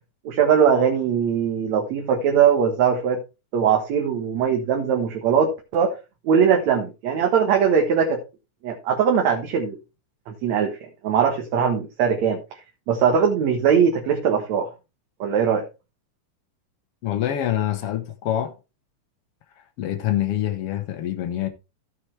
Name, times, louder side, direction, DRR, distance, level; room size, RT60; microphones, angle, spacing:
voice 1, 0.3-3.2 3.5-5.9 6.2-8.2 8.6-9.8 10.3-12.4 12.9-14.7 15.2-15.7, right 7 dB, 70° right, 2.5 m, -20 dB
voice 2, 17.0-18.5 19.8-21.5, left 12 dB, 60° left, 1.8 m, -25 dB
15.0 x 5.9 x 3.2 m
omnidirectional pair, 3.4 m